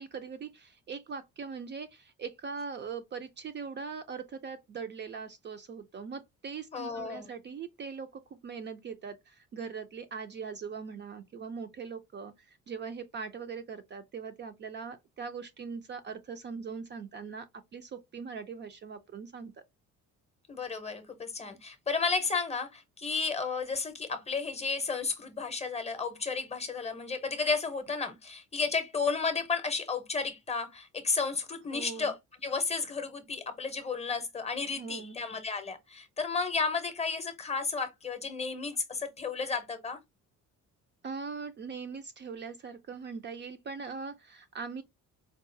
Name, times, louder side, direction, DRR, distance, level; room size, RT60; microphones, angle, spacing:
voice 1, 0.0-17.5 17.7-19.5 31.7-32.1 34.8-35.2 41.0-44.8, right 5 dB, 35° right, 0.4 m, -41 dB
voice 2, 6.7-7.3 20.5-32.2 32.4-40.0, left 4 dB, 20° left, 0.7 m, -33 dB
4.6 x 2.4 x 2.6 m
cardioid pair, 145°, 32 cm